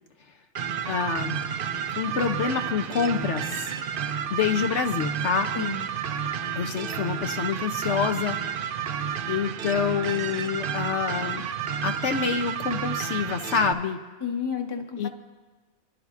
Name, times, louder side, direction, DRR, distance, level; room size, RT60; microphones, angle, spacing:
sound 1, 0.5-13.7, right 8 dB, 55° right, 0.6 m, -31 dB
voice 1, 0.9-1.4 2.0-3.7 4.3-5.5 6.6-8.4 9.3-11.4 11.8-14.0 15.0-15.1, left 6 dB, 65° left, 6 dB, 0.9 m, -27 dB
voice 2, 5.5-5.9 14.2-15.1, left 6 dB, 20° left, 4 dB, 0.8 m, -31 dB
29.0 x 12.0 x 2.5 m, 1.3 s
omnidirectional pair, 1.4 m